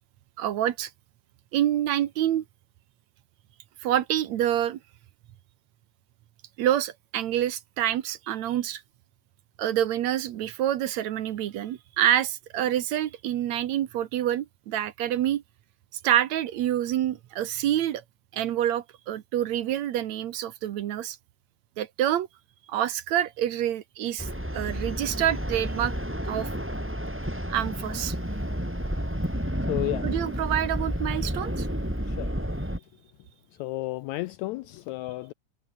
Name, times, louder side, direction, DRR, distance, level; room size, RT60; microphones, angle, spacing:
voice 1, 0.4-0.9 1.5-2.4 3.8-4.8 6.6-8.8 9.6-15.4 16.0-18.0 18.3-21.2 21.8-22.3 22.7-25.9 26.3-26.5 27.5-28.2 30.0-31.7, right 11 dB, 65° right, 2.2 m, -27 dB
sound 1, 24.2-32.8, equal, 5° right, 6.6 m, -31 dB
voice 2, 29.7-30.0 32.2-32.3 33.6-35.3, left 18 dB, 80° left, 1.6 m, -32 dB
omnidirectional pair, 3.7 m